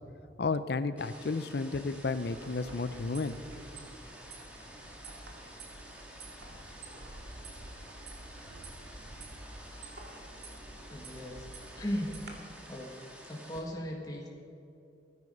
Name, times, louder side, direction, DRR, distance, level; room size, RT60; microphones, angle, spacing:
voice 1, 0.4-3.4, left 3 dB, 60° left, 13 dB, 0.6 m, -32 dB
sound 1, 1.0-13.6, equal, 5° right, 1.8 m, -51 dB
sound 2, 2.3-12.3, right 2 dB, 60° right, 2.2 m, -49 dB
voice 2, 10.9-11.5 11.7-12.4 12.7-12.9 13.2-14.3, equal, 20° left, -1 dB, 1.6 m, -37 dB
18.5 x 9.6 x 5.5 m, 2.6 s
head